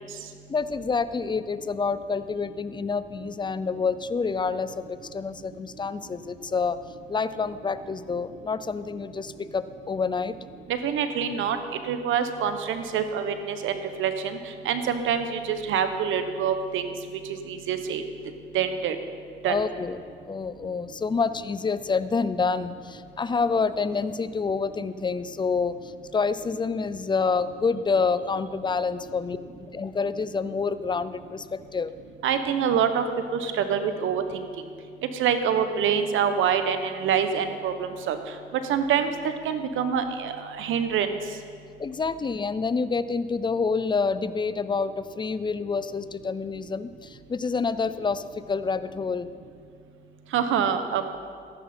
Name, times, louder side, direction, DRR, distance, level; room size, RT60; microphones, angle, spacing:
voice 1, 0.5-6.8 7.1-10.3 19.5-20.0 20.3-31.9 41.8-49.3, left 5 dB, 25° left, 14 dB, 0.5 m, -28 dB
voice 2, 10.7-11.6 11.9-14.4 14.6-16.9 17.5-18.0 18.5-19.0 19.4-19.6 32.2-33.0 33.3-34.5 35.1-38.2 38.7-39.1 39.4-41.1 50.3-51.2, right 7 dB, 85° right, 9 dB, 1.0 m, -25 dB
14.0 x 12.0 x 4.4 m, 2.2 s
cardioid pair, 90°, 20 cm